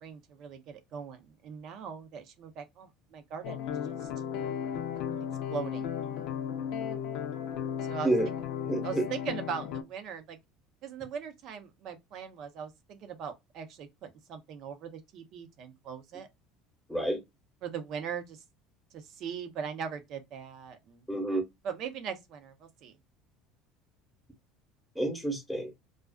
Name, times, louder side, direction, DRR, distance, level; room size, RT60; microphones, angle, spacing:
voice 1, 0.0-3.6 4.0-4.1 5.5-5.9 7.9-8.1 8.8-10.4 10.8-16.3 17.6-18.4 18.9-21.0 21.6-22.9, right 7 dB, 55° right, 0.7 m, -40 dB
sound 1, 3.4-9.8, left 8 dB, 70° left, 0.5 m, -35 dB
voice 2, 8.6-9.0 16.9-17.2 21.1-21.4 24.9-25.7, right 1 dB, ahead, 1.0 m, -29 dB
2.4 x 2.3 x 2.3 m
supercardioid pair, 105°, 0 cm